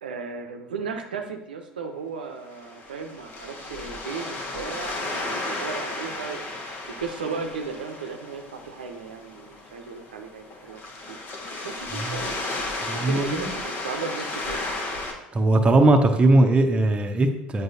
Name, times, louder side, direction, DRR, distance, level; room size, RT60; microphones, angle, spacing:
voice 1, 0.0-6.4 6.9-10.8 11.1-11.2 11.6-14.6, right 5 dB, 75° right, 4 dB, 0.6 m, -35 dB
sound 1, 2.4-15.1, left 2 dB, 45° left, 1.2 m, -34 dB
voice 2, 11.9-12.2 12.8-13.4 15.3-17.6, right 2 dB, 20° right, 4 dB, 0.8 m, -19 dB
7.8 x 5.3 x 2.7 m, 0.86 s
figure-of-eight pair, 70°, 5 cm